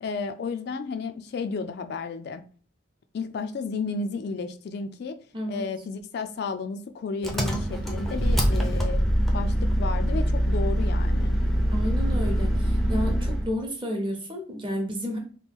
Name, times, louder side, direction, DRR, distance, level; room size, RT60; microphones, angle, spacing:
voice 1, 0.0-2.4 3.1-5.2 5.5-9.0 9.3-11.4, left 4 dB, 55° left, 0.3 m, -32 dB
Engine, 7.2-13.5, equal, ahead, 0.5 m, -24 dB
voice 2, 11.7-15.2, equal, 25° right, 0.8 m, -31 dB
3.0 x 2.2 x 3.5 m
head